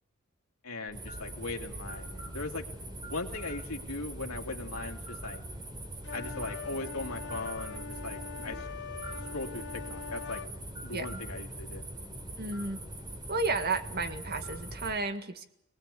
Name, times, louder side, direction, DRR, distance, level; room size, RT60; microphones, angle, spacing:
voice 1, 0.6-5.4 6.1-8.7 9.3-10.4 10.8-11.9, left 3 dB, 80° left, 2 dB, 2.6 m, -39 dB
sound 1, 0.9-14.9, right 1 dB, 20° right, 4.2 m, -42 dB
sound 2, 6.0-10.5, left 6 dB, 55° left, 0.9 m, -43 dB
voice 2, 10.9-11.2 12.4-12.9 13.3-15.5, right 3 dB, 45° right, 7 dB, 2.0 m, -33 dB
24.0 x 19.5 x 8.5 m, 0.78 s
head